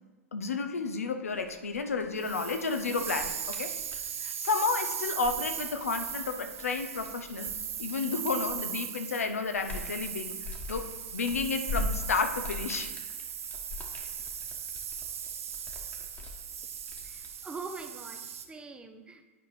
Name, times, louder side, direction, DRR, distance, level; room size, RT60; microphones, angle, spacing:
voice 1, 0.3-3.7 4.2-7.5 7.8-10.4 10.7-12.9, left 4 dB, 85° left, 7 dB, 0.6 m, -31 dB
sound 1, 1.3-4.1 5.0-8.8 9.2-17.3, left 2 dB, 20° left, 1.2 m, -42 dB
sound 2, 2.2-18.5, right 8 dB, 75° right, 0.6 m, -38 dB
voice 2, 17.0-19.3, right 4 dB, 15° right, 6 dB, 0.6 m, -43 dB
9.5 x 5.1 x 3.3 m, 1.2 s
hypercardioid pair, 105°, 8 cm